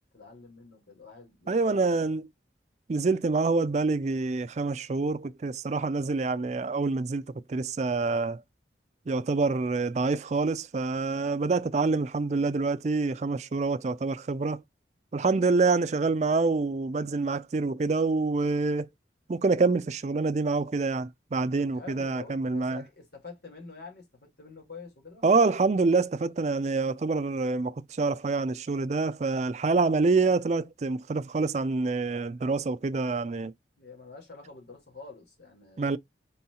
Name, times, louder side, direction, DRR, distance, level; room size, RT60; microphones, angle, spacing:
voice 1, 0.1-2.0 21.6-25.2 33.8-36.0, left 4 dB, 70° left, 2.1 m, -47 dB
voice 2, 1.5-2.2 2.9-8.4 9.1-14.6 15.1-18.9 19.3-22.8 25.2-33.5 35.8-36.0, right 3 dB, 40° right, 0.4 m, -26 dB
4.2 x 3.8 x 2.3 m
head